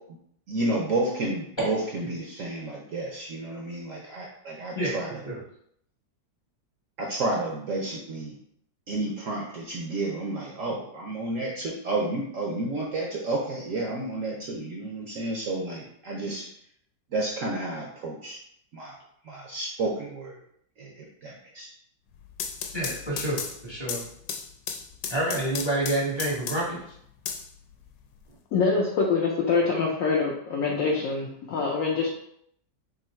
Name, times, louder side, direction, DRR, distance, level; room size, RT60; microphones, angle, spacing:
voice 1, 0.5-5.2 7.0-8.4 8.9-16.5 17.1-18.4 18.7-18.9 19.3-20.4 20.8-21.7, right 2 dB, 65° right, -1 dB, 0.8 m, -31 dB
sound 1, 22.1-26.8 27.3-28.2, left 7 dB, 90° left, 1.3 m, -35 dB
voice 2, 22.7-24.0 25.1-26.8, right 1 dB, 25° left, -6 dB, 0.7 m, -28 dB
voice 3, 28.5-32.1, left 4 dB, 70° left, -2 dB, 0.8 m, -25 dB
3.8 x 2.6 x 4.3 m, 0.69 s
omnidirectional pair, 2.0 m